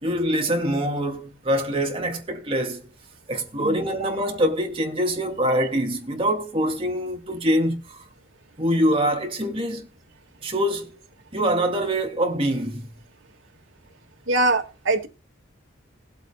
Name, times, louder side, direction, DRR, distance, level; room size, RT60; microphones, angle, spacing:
voice 1, 0.0-2.9 3.3-8.0 8.6-9.9 10.4-11.0 11.3-12.9, equal, 30° right, 2.3 m, -24 dB
voice 2, 3.6-4.1 14.3-15.1, right 2 dB, 85° right, 1.9 m, -23 dB
20.0 x 8.1 x 2.3 m
head